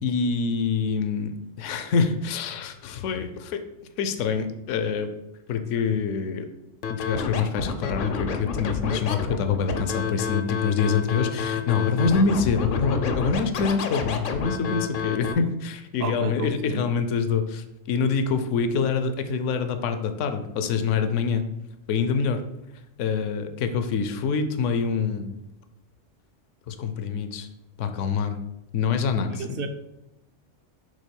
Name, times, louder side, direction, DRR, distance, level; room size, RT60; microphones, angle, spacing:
voice 1, 0.0-3.6 4.0-5.1 5.5-6.5 6.9-21.5 21.9-22.4 23.0-25.4 26.7-27.5 27.8-28.4 28.7-29.6, left 5 dB, 75° left, 8 dB, 1.0 m, -26 dB
Scratching (performance technique), 6.8-15.3, left 6 dB, 55° left, 0.6 m, -29 dB
voice 2, 16.0-16.9 29.2-29.7, right 5 dB, 60° right, 7 dB, 0.7 m, -32 dB
5.4 x 3.5 x 5.2 m, 0.89 s
omnidirectional pair, 1.3 m